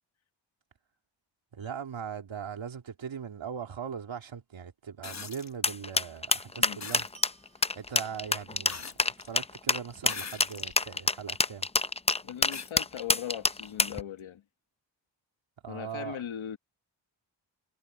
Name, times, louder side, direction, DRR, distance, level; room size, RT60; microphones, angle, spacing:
voice 1, 1.5-7.1 7.8-8.9 9.2-11.7 15.6-16.2, right 7 dB, 80° right, 2.8 m, -40 dB
sound 1, 3.6-4.3 7.1-8.5, right 6 dB, 45° right, 6.5 m, -62 dB
sound 2, 5.0-5.5 6.8-7.1 8.7-9.3 10.0-10.8 11.4-11.5 12.5-12.7 14.2-14.3, left 5 dB, 35° left, 1.1 m, -41 dB
sound 3, 5.6-14.0, left 3 dB, 15° left, 0.5 m, -26 dB
voice 2, 12.2-14.4 15.7-16.6, left 10 dB, 90° left, 1.2 m, -39 dB
wide cardioid pair, 135°, 46 cm